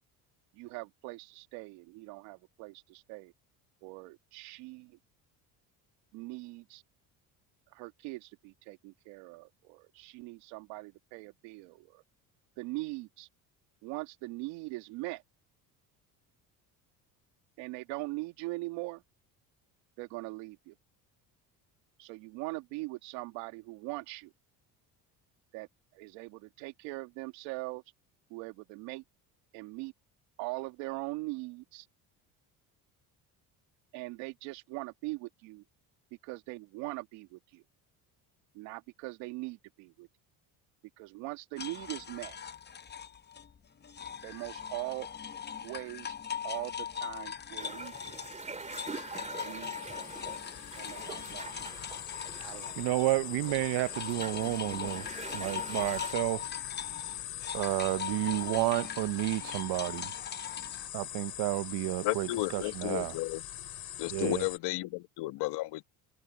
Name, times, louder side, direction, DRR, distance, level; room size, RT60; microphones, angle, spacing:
voice 1, 0.5-3.3 3.8-5.0 6.1-6.8 7.7-12.0 12.6-13.3 13.8-15.2 17.6-19.0 20.0-20.8 22.0-24.3 25.5-25.7 25.9-27.8 28.3-29.0 29.5-29.9 30.4-31.9 33.9-35.6 36.2-37.6 38.5-40.1 41.0-42.4 44.2-45.1 45.6-46.1 46.4-48.2 49.1-50.0 50.7-51.6 52.4-52.8, right 22 dB, 90° right, 2.3 m, -41 dB
sound 1, 41.6-53.1 53.5-60.9, left 7 dB, 25° left, 0.8 m, -41 dB
sound 2, 47.6-56.1, right 3 dB, 15° right, 2.9 m, -45 dB
sound 3, 49.8-64.6, left 12 dB, 55° left, 3.3 m, -43 dB
voice 2, 52.8-55.1 55.3-56.4 57.5-60.1 60.9-62.3 62.5-63.1 64.1-64.4, right 19 dB, 70° right, 0.8 m, -31 dB
voice 3, 62.0-63.4 64.0-65.8, left 19 dB, 75° left, 1.5 m, -33 dB
supercardioid pair, 95°, 41 cm